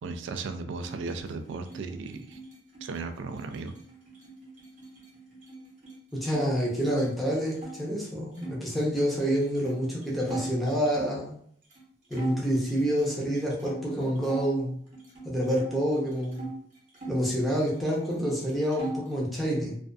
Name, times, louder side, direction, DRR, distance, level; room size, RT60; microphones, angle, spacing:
voice 1, 0.0-2.4 2.8-3.7, right 4 dB, 70° right, 7 dB, 0.3 m, -36 dB
sound 1, 0.7-6.5 6.8-7.8 8.3-11.2 11.7-11.8 12.1-14.5 14.9-16.5 16.9-18.1 18.3-19.2, right 3 dB, 40° right, 0.8 m, -41 dB
voice 2, 6.1-11.3 12.1-14.8 15.2-16.5 17.1-19.8, equal, ahead, -5 dB, 0.6 m, -28 dB
2.5 x 2.3 x 2.2 m, 0.63 s
head